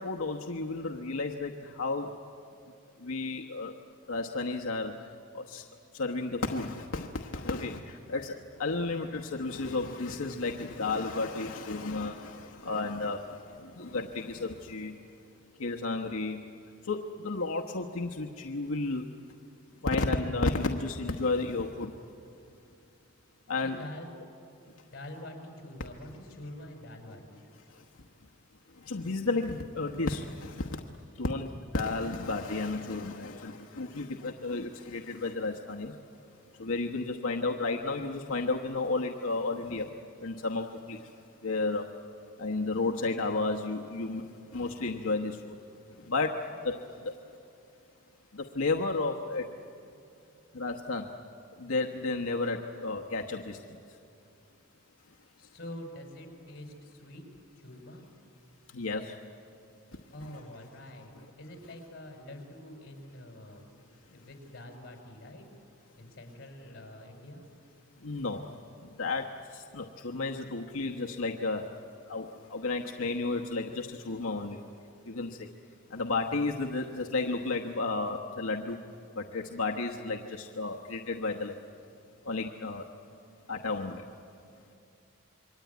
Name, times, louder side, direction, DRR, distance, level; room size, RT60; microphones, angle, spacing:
voice 1, 0.0-2.1 3.0-3.7 4.1-5.0 5.3-5.6 5.9-15.0 15.6-16.4 16.8-19.1 19.8-21.9 23.5-23.8 27.7-27.8 28.8-30.8 31.1-36.0 36.6-39.9 40.2-41.1 41.4-41.9 42.4-44.2 44.5-45.6 45.9-47.2 48.3-49.5 50.5-51.1 51.6-53.6 58.7-59.2 60.2-60.3 61.2-61.3 68.0-68.5 68.8-71.7 72.1-74.6 75.0-75.5 75.9-78.8 79.1-81.6 82.2-82.8 83.5-84.1, left 3 dB, 90° left, 2 dB, 1.1 m, -32 dB
voice 2, 23.6-24.2 24.9-27.4 55.4-57.3 57.6-58.1 60.1-63.6 64.1-65.5 66.0-67.4, left 1 dB, 50° left, 3 dB, 5.0 m, -46 dB
27.5 x 23.0 x 9.3 m, 2.6 s
head